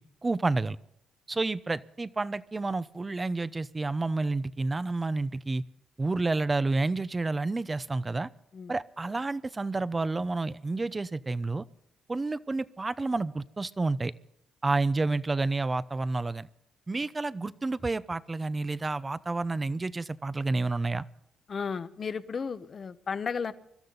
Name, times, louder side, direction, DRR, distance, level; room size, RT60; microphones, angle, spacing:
voice 1, 0.2-0.8 1.3-5.6 6.0-8.3 8.7-11.6 12.1-14.1 14.6-16.5 16.9-21.0, right 3 dB, 25° right, 17 dB, 0.7 m, -30 dB
voice 2, 21.5-23.5, left 5 dB, 45° left, 13 dB, 1.0 m, -34 dB
24.5 x 13.0 x 4.0 m, 0.78 s
cardioid pair, 90°, 0 cm